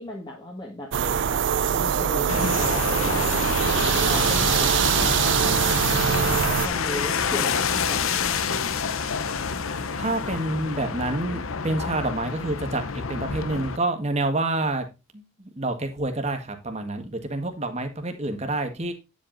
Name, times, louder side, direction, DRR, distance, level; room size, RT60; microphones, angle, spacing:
voice 1, 0.0-3.5 3.7-6.0 6.6-8.4, equal, 20° left, -2 dB, 1.6 m, -36 dB
sound 1, 0.9-6.7, right 8 dB, 55° right, 0.4 m, -23 dB
sound 2, 2.3-13.8, left 5 dB, 80° left, 0.8 m, -28 dB
voice 2, 10.0-14.9 15.1-18.9, right 2 dB, 30° right, 6 dB, 1.5 m, -28 dB
9.6 x 7.4 x 2.6 m, 0.26 s
head